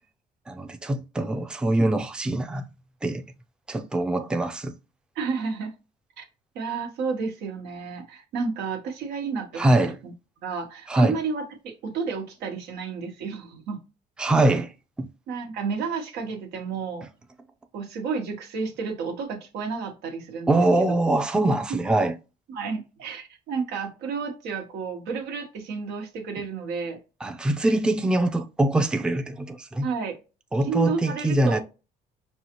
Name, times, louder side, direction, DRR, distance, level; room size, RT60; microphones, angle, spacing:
voice 1, 0.5-2.7 3.0-3.2 3.7-4.7 9.6-9.9 10.9-11.2 14.2-14.7 15.0-15.1 20.5-22.1 27.2-29.9 30.5-31.6, right 2 dB, 5° right, 0.4 m, -23 dB
voice 2, 5.1-5.7 6.2-6.3 6.5-10.1 10.4-13.8 15.3-17.1 17.7-20.8 22.5-27.0 29.8-30.2 30.6-31.6, right 5 dB, 85° right, 1.3 m, -31 dB
5.4 x 2.4 x 2.9 m
cardioid pair, 110°, 17 cm